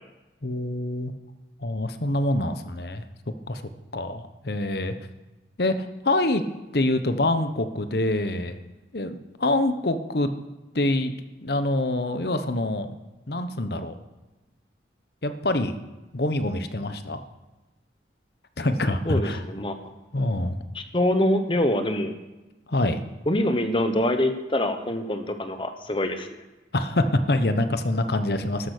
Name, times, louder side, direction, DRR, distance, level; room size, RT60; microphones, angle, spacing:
voice 1, 0.4-1.1 1.6-3.0 3.5-3.6 3.9-4.9 5.6-6.4 6.7-8.6 8.9-10.3 10.7-11.1 11.4-12.9 13.3-14.0 15.2-15.8 16.1-17.2 18.6-19.4 20.1-20.6 22.7-23.0 26.7-28.7, left 1 dB, 60° left, 9 dB, 1.0 m, -25 dB
voice 2, 19.0-19.7 20.7-22.1 23.3-26.3, left 1 dB, 30° left, 7 dB, 1.1 m, -24 dB
12.5 x 9.9 x 6.7 m, 1.1 s
head